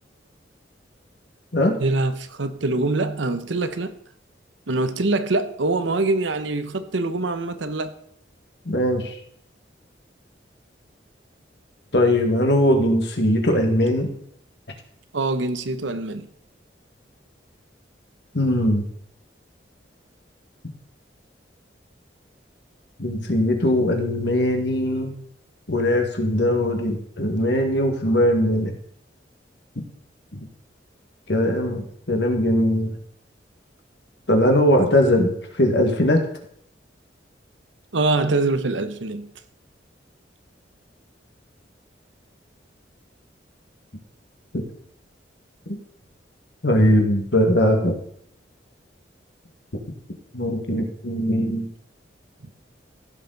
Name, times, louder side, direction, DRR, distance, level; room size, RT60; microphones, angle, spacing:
voice 1, 1.8-3.9 4.7-7.9 15.1-16.3 37.9-39.3, right 2 dB, 90° right, 0.9 m, -24 dB
voice 2, 8.7-9.1 11.9-14.1 18.3-18.8 23.0-25.1 25.7-28.7 30.3-30.4 31.3-32.9 34.3-35.3 35.6-36.2 44.5-44.6 45.7-45.8 46.6-48.0 50.3-51.7, left 1 dB, 65° left, 1.8 m, -20 dB
15.5 x 6.7 x 4.0 m
head